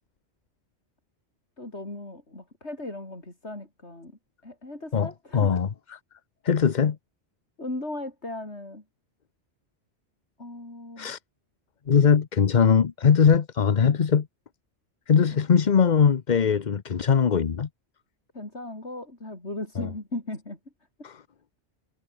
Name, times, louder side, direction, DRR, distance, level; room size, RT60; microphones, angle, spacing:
voice 1, 1.6-5.6 7.6-8.8 10.4-11.1 18.3-20.6 21.0-21.1, left 2 dB, 75° left, 6.0 m, -37 dB
voice 2, 4.9-6.0 6.4-7.0 11.0-11.2 11.9-14.3 15.1-17.7 19.8-19.9 21.0-21.2, left 6 dB, 45° left, 0.9 m, -21 dB
omnidirectional pair, 1.2 m